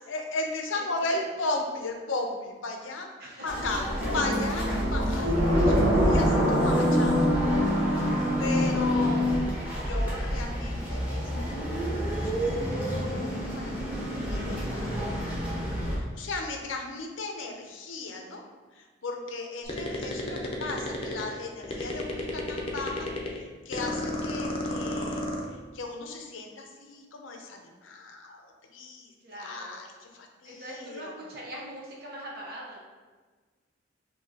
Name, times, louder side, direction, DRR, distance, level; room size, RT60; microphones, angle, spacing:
voice 1, 0.1-3.1 3.4-3.8 4.1-7.4 7.8-9.2 9.8-12.4 12.6-13.5 13.8-15.0 15.9-18.5 18.7-23.1 23.4-25.3 25.7-31.1, left 2 dB, 85° left, 3 dB, 0.6 m, -36 dB
voice 2, 0.9-1.2 3.2-3.8 8.8-9.0 29.2-29.8 30.4-32.8, right 1 dB, 55° right, -4 dB, 1.1 m, -42 dB
sound 1, 3.5-16.0, equal, 10° right, 1.1 m, -31 dB
sound 2, 4.0-9.4, equal, 85° right, 1.0 m, -24 dB
sound 3, 19.7-21.4 21.6-23.4 23.7-25.5, left 1 dB, 30° left, 0.6 m, -31 dB
5.5 x 2.8 x 2.8 m, 1.4 s
head